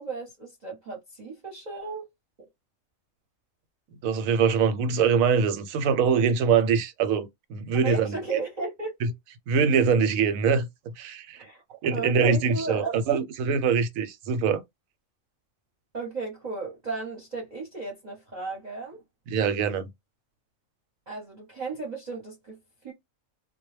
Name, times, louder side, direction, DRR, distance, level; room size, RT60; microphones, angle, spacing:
voice 1, 0.0-2.1 2.4-2.5 7.8-9.0 11.4-11.6 11.9-13.0 15.9-19.0 21.1-22.6 22.8-22.9, right 4 dB, 40° right, 0.7 m, -34 dB
voice 2, 4.0-8.2 9.0-9.1 9.5-10.7 11.0-11.4 11.8-14.6 19.3-19.9, right 6 dB, 85° right, 1.0 m, -23 dB
2.2 x 2.0 x 3.1 m
omnidirectional pair, 1.4 m